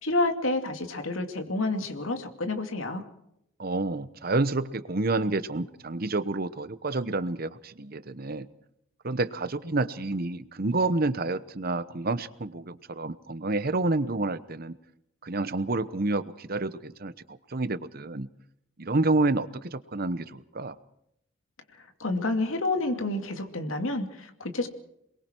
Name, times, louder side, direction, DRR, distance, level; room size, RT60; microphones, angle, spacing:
voice 1, 0.0-3.0 21.8-24.7, left 2 dB, 90° left, 5 dB, 2.6 m, -29 dB
voice 2, 3.6-8.5 9.0-14.8 15.2-18.3 18.8-20.8, right 2 dB, 50° right, 14 dB, 1.0 m, -29 dB
28.0 x 21.5 x 4.6 m, 0.77 s
head